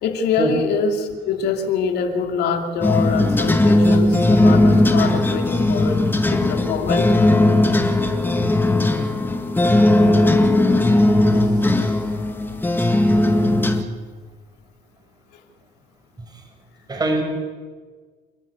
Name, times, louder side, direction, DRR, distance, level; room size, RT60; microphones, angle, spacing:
voice 1, 0.0-6.0 6.3-7.1, left 6 dB, 75° left, 4 dB, 2.9 m, -24 dB
sound 1, 2.8-13.8, left 1 dB, 10° left, 1.9 m, -17 dB
voice 2, 16.9-17.2, right 2 dB, 25° right, 3 dB, 5.3 m, -23 dB
29.5 x 11.5 x 8.3 m, 1.5 s
cardioid pair, 110°, 17 cm